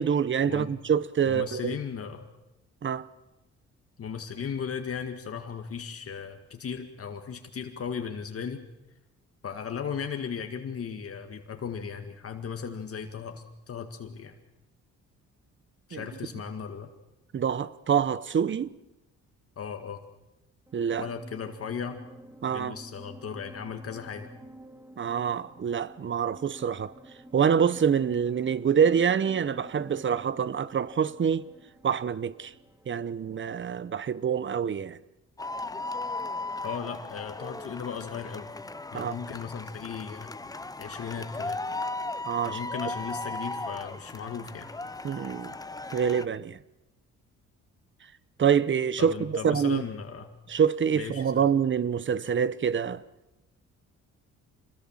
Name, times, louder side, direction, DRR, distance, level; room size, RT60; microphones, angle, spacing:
voice 1, 0.0-1.8 2.8-3.1 15.9-16.0 17.3-18.7 20.7-21.1 22.4-22.7 25.0-26.9 27.3-31.5 31.8-32.5 32.9-35.0 38.9-39.2 42.3-42.6 45.0-45.5 45.9-46.6 48.4-49.8 50.5-53.0, right 7 dB, 40° right, 0.9 m, -26 dB
voice 2, 1.2-2.2 4.0-8.6 9.4-14.4 15.9-16.9 19.6-20.0 21.0-22.0 22.5-24.3 36.6-38.5 38.9-40.3 40.8-41.6 42.4-44.7 49.0-50.3 50.9-51.5, left 6 dB, 50° left, 1.9 m, -36 dB
sound 1, 20.7-34.0, right 1 dB, 10° right, 2.1 m, -51 dB
sound 2, 35.4-46.3, left 2 dB, 10° left, 0.8 m, -37 dB
26.0 x 20.5 x 7.4 m
cardioid pair, 90°, 30 cm